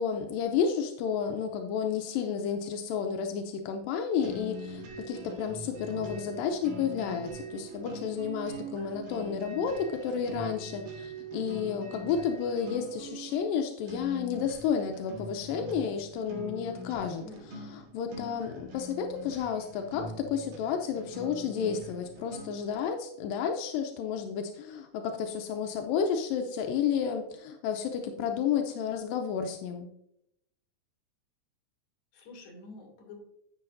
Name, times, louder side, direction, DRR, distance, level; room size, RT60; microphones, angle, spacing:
voice 1, 0.0-17.2 17.9-29.9, left 7 dB, 90° left, 4 dB, 2.4 m, -31 dB
sound 1, 4.2-22.7, right 2 dB, 85° right, 3.2 m, -43 dB
voice 2, 17.2-17.8 32.1-33.2, left 3 dB, 60° left, 0 dB, 3.3 m, -48 dB
10.5 x 8.2 x 2.6 m, 0.78 s
omnidirectional pair, 3.9 m